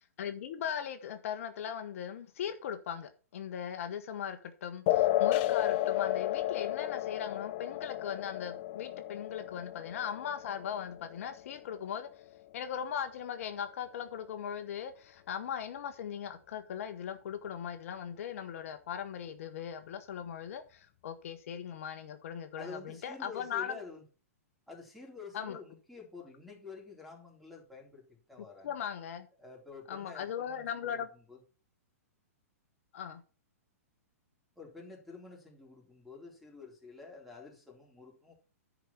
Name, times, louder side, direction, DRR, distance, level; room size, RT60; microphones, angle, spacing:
voice 1, 0.2-12.2 12.5-23.8 25.3-25.6 28.6-29.3 29.9-31.1 32.9-33.2, left 8 dB, 60° left, 1.0 m, -39 dB
sound 1, 4.9-11.9, left 14 dB, 45° left, 0.5 m, -32 dB
voice 2, 22.6-24.0 24.7-28.8 29.4-31.4 34.6-38.3, left 4 dB, ahead, 3.7 m, -49 dB
10.0 x 5.1 x 5.7 m
hypercardioid pair, 125°, 8 cm